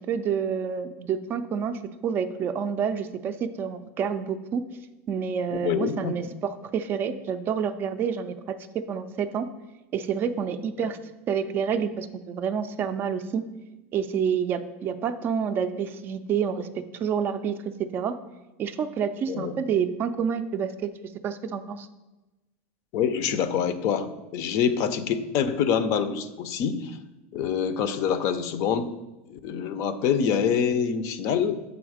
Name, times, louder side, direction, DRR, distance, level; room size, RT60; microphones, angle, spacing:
voice 1, 0.1-4.6 5.1-8.3 8.9-9.5 9.9-11.0 11.3-13.4 13.9-17.6 17.9-18.1 18.6-20.9 21.2-21.9, right 7 dB, 30° right, 10 dB, 0.4 m, -28 dB
voice 2, 5.5-6.1 10.8-10.9 19.3-19.5 22.9-27.0 27.3-28.9 29.3-31.6, left 7 dB, 45° left, 12 dB, 0.5 m, -26 dB
7.1 x 3.9 x 4.9 m, 1.1 s
supercardioid pair, 145°, 7 cm